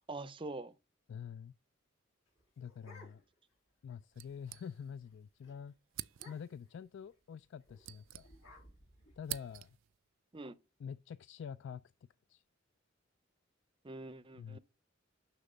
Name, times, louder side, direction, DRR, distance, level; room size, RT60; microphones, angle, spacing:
voice 1, 0.1-0.7 10.3-10.6 13.8-14.6, right 2 dB, 25° right, 0.6 m, -44 dB
voice 2, 1.1-1.5 2.6-3.2 3.8-5.7 6.3-8.3 9.2-9.8 10.8-11.8 12.3-12.4 14.3-14.6, left 7 dB, 65° left, 0.3 m, -46 dB
sound 1, 2.3-3.5 3.9-4.0 4.3-4.6 4.9-5.1 5.4-5.6 6.1-6.7 7.6-9.7, left 1 dB, 85° left, 3.1 m, -60 dB
sound 2, 4.1-5.1 5.4-5.5 5.9-6.6 7.4-8.7 9.0-10.0, right 15 dB, 70° right, 0.3 m, -47 dB
6.7 x 6.0 x 5.3 m
head